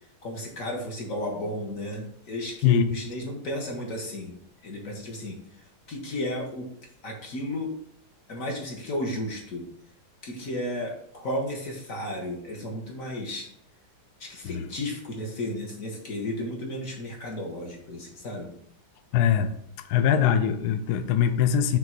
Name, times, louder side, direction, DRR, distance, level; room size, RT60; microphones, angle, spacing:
voice 1, 0.2-4.3 4.6-6.7 7.0-7.8 8.3-9.7 10.2-13.5 14.2-18.5, left 1 dB, 50° left, 1 dB, 1.2 m, -33 dB
voice 2, 19.1-19.5 19.9-21.8, left 8 dB, 80° left, 8 dB, 0.9 m, -22 dB
5.9 x 3.8 x 4.4 m, 0.68 s
omnidirectional pair, 2.3 m